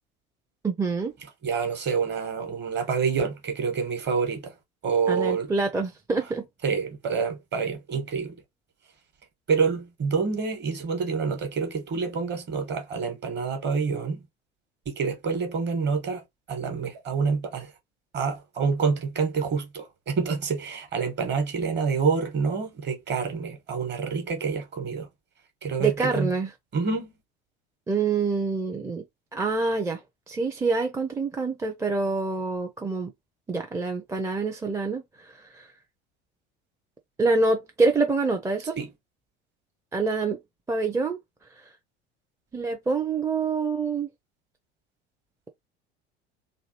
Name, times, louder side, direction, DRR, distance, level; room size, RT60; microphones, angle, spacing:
voice 1, 0.6-1.1 5.1-6.5 25.8-26.5 27.9-29.0 29.3-30.0 30.3-33.1 33.5-35.7 37.2-38.8 39.9-40.4 40.7-41.2 41.6-41.7 42.5-44.1, right 4 dB, 10° right, 0.5 m, -26 dB
voice 2, 1.4-4.5 4.8-5.5 6.6-8.3 9.5-14.2 14.9-16.2 16.5-17.7 18.1-25.1 25.6-26.3 26.7-27.1 38.8-38.9, right 5 dB, 35° right, 1.2 m, -27 dB
3.0 x 2.4 x 2.7 m
figure-of-eight pair, 70°, 33 cm